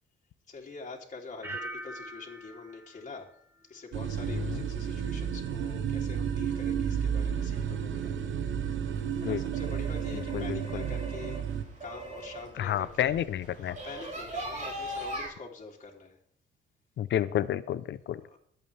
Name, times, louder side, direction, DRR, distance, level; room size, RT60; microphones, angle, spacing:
voice 1, 0.5-3.4 3.7-8.2 9.2-11.4 11.8-13.2 13.5-16.2 18.1-18.4, left 4 dB, 35° left, -1 dB, 3.0 m, -45 dB
sound 1, 1.4-4.3 4.6-5.1, right 2 dB, 10° right, 3.4 m, -44 dB
sound 2, 3.9-11.6, right 8 dB, 75° right, 1.2 m, -32 dB
voice 2, 4.3-4.6 9.2-9.4 10.1-10.8 12.6-13.8 17.0-18.2, left 11 dB, 65° left, 16 dB, 0.7 m, -30 dB
sound 3, 8.8-15.3, right 1 dB, 40° right, 6.6 m, -41 dB
22.5 x 8.3 x 3.4 m, 0.64 s
cardioid pair, 90°, 20 cm